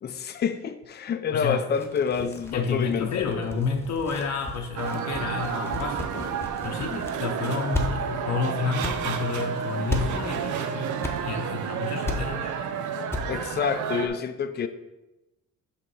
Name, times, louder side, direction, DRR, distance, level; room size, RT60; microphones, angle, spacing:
voice 1, 0.0-3.4 13.3-14.7, left 6 dB, 35° left, 10 dB, 0.5 m, -28 dB
voice 2, 1.3-1.6 2.5-6.3 6.6-11.0 11.2-12.5, left 5 dB, 65° left, 1 dB, 0.8 m, -30 dB
sound 1, 1.7-7.3 7.7-7.8 8.2-8.3 8.8-8.9 9.9-10.0 11.0-11.1 11.5-11.6 12.0-12.2 12.6-12.7 13.1-13.3 13.5-13.6, left 1 dB, 10° left, 0.8 m, -34 dB
sound 2, 4.8-14.1, right 7 dB, 75° right, 0.6 m, -31 dB
5.5 x 3.4 x 5.5 m, 1.0 s
cardioid pair, 90°, 30 cm